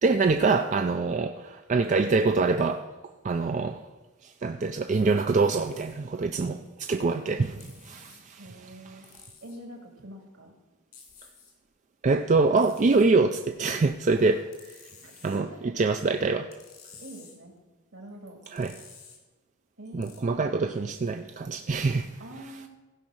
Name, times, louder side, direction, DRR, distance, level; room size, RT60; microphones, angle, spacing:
voice 1, 0.0-2.9 3.2-3.8 4.2-8.4 12.0-14.7 15.2-16.5 18.5-18.7 19.9-22.2, right 3 dB, 35° right, 0.4 m, -25 dB
sound 1, 5.6-6.0 7.6-8.2 9.0-9.6 10.9-11.5 12.6-13.1 14.5-15.4 16.5-17.4 18.4-19.2 20.0-20.2, left 6 dB, 85° left, 3.0 m, -52 dB
voice 2, 8.4-9.0 9.4-10.5 15.0-15.7 17.0-17.5 17.9-18.4 19.8-20.4 22.2-22.7, right 1 dB, 65° right, 2.3 m, -45 dB
15.5 x 5.4 x 6.2 m
head